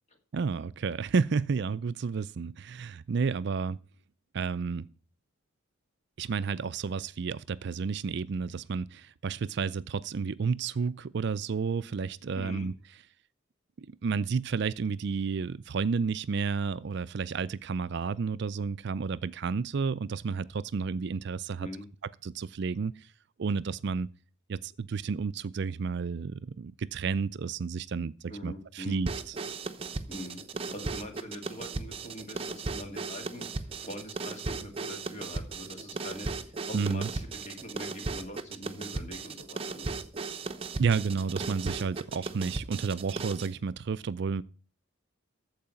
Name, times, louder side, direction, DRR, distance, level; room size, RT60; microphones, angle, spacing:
voice 1, 0.3-3.8 4.3-4.9 6.2-12.7 14.0-21.7 22.2-22.9 23.4-24.1 24.5-29.3 36.7-37.1 40.8-44.4, right 5 dB, 55° right, 0.4 m, -31 dB
voice 2, 12.3-12.7 21.6-21.9 28.3-29.0 30.1-30.4 30.7-40.0, equal, 35° left, 2.0 m, -43 dB
sound 1, 29.1-43.5, right 3 dB, 30° right, 0.8 m, -37 dB
14.0 x 4.8 x 7.6 m
head